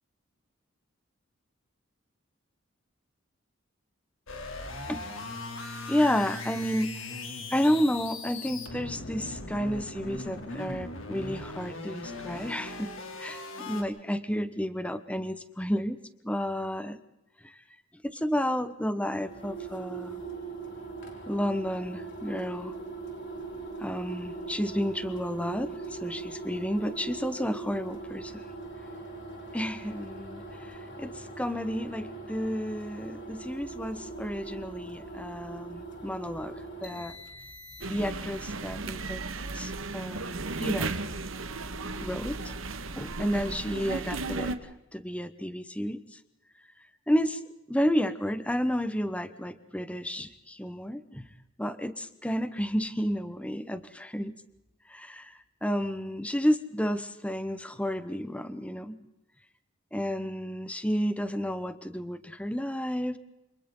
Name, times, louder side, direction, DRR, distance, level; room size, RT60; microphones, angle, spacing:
sound 1, 4.3-13.8, left 2 dB, 75° left, 2.9 m, -39 dB
voice 1, 5.9-7.2 7.5-12.9 13.2-16.0 16.2-17.0 17.4-17.5 18.0-20.2 21.3-22.8 23.8-28.4 29.5-36.5 36.8-37.2 37.9-39.2 39.5-41.0 42.0-42.5 43.0-44.6 44.9-46.0 47.1-47.4 47.7-51.3 51.6-54.3 54.9-55.3 55.6-59.0 59.9-63.2, equal, 5° left, 11 dB, 0.9 m, -31 dB
sound 2, 19.2-38.2, right 3 dB, 60° left, 5.0 m, -41 dB
sound 3, 37.8-44.6, right 3 dB, 80° right, 1.5 m, -35 dB
28.5 x 26.5 x 3.8 m, 0.94 s
head